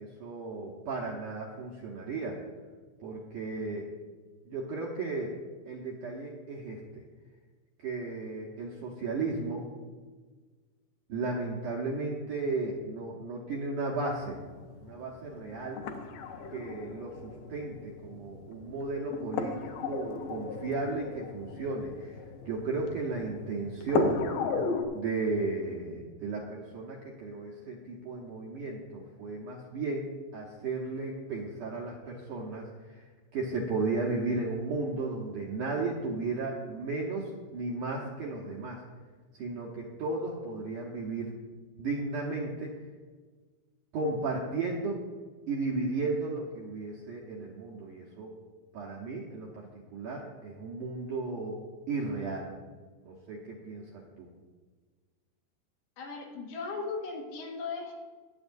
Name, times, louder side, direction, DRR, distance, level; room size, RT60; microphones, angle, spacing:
voice 1, 0.0-2.4 3.0-3.9 4.5-5.3 5.7-7.0 7.8-9.7 11.1-14.4 14.8-15.8 16.5-24.2 24.9-38.8 39.3-41.3 41.8-42.7 43.9-45.0 45.5-48.3 48.7-49.7 49.9-51.6 51.9-52.5 53.1-53.8 54.2-54.3, right 3 dB, 70° right, -3 dB, 2.0 m, -34 dB
sound 1, 14.2-24.8, left 4 dB, 85° left, 1.8 m, -36 dB
voice 2, 56.0-58.0, left 4 dB, 70° left, -1 dB, 3.6 m, -37 dB
21.0 x 7.8 x 2.6 m, 1.4 s
omnidirectional pair, 5.0 m